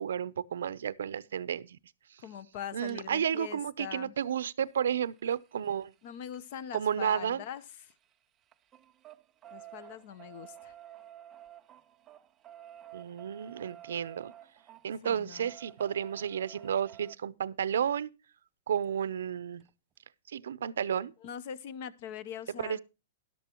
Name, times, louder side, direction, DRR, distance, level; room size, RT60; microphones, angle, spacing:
voice 1, 0.0-1.8 2.7-5.9 6.7-7.4 12.9-14.3 14.8-18.1 18.7-19.6 20.3-21.1 22.6-22.8, right 8 dB, 85° right, 0.6 m, -32 dB
voice 2, 2.2-4.1 6.0-7.6 9.5-10.7 15.0-15.5 21.2-22.8, left 8 dB, 45° left, 0.8 m, -42 dB
sound 1, 2.9-3.0 4.6-8.1 8.4-17.2 18.8-18.9 19.2-19.3 19.6-19.7, right 11 dB, 20° right, 0.6 m, -52 dB
12.5 x 12.0 x 3.0 m
hypercardioid pair, 155°, 0 cm